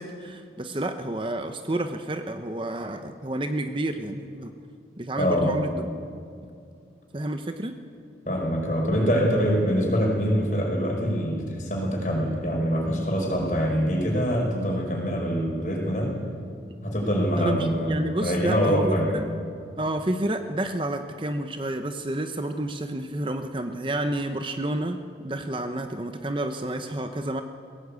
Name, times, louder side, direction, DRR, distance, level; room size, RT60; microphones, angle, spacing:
voice 1, 0.0-4.5 5.0-6.0 7.1-7.8 17.4-19.2 19.8-27.4, right 1 dB, 30° right, 7 dB, 0.8 m, -30 dB
voice 2, 5.2-5.6 8.3-16.2 16.8-19.1, equal, 45° left, 0 dB, 5.1 m, -24 dB
21.5 x 16.5 x 8.5 m, 2.3 s
head